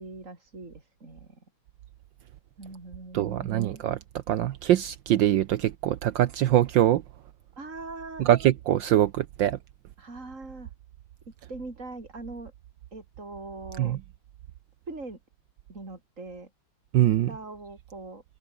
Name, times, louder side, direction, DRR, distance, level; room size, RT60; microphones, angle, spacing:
voice 1, 0.0-1.4 2.6-3.8 7.6-8.3 10.0-10.7 11.3-12.5 12.9-14.0 14.9-15.2 15.7-16.5 17.3-18.2, right 2 dB, 35° right, 4.9 m, -41 dB
voice 2, 3.1-4.0 4.3-7.0 8.2-9.6 13.8-14.0 16.9-17.3, right 12 dB, 70° right, 1.4 m, -23 dB
open air
omnidirectional pair, 2.2 m